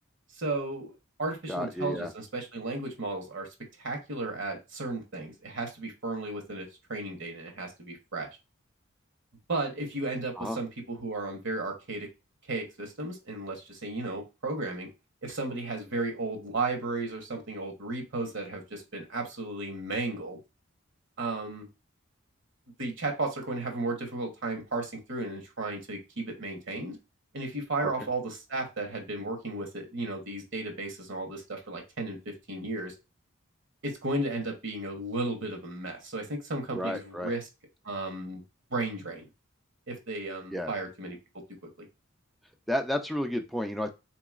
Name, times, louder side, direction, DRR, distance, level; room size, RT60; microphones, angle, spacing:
voice 1, 0.3-0.9 1.2-3.5 3.8-8.3 9.5-12.1 12.5-14.9 15.2-20.4 21.2-21.7 22.8-27.0 27.3-32.9 33.8-37.5 37.8-38.4 38.7-39.2 39.9-41.2, right 2 dB, 65° right, 4 dB, 1.1 m, -34 dB
voice 2, 1.5-2.1 10.4-10.6 27.8-27.9 36.7-37.3 40.5-40.7 42.7-43.9, equal, ahead, 5 dB, 0.3 m, -31 dB
3.8 x 2.9 x 2.4 m, 0.26 s
head